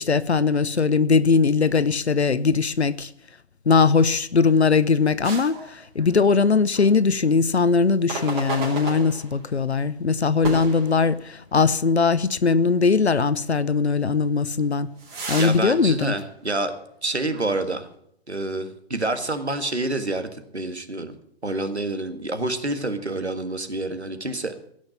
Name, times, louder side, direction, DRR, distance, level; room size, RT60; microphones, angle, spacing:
voice 1, 0.0-3.1 3.7-14.9 15.3-16.1, left 5 dB, 80° left, 0.8 m, -20 dB
sound 1, 5.2-6.4 6.7-6.9 8.1-9.6 10.4-11.6 12.0-12.1 12.8-12.9 14.3-17.0 17.3-17.5, right 3 dB, 25° right, 5.2 m, -34 dB
voice 2, 15.4-16.7 17.0-17.9 18.3-21.1 21.4-24.5, right 2 dB, 85° right, 1.9 m, -28 dB
17.0 x 6.4 x 9.8 m
figure-of-eight pair, 125°, 32 cm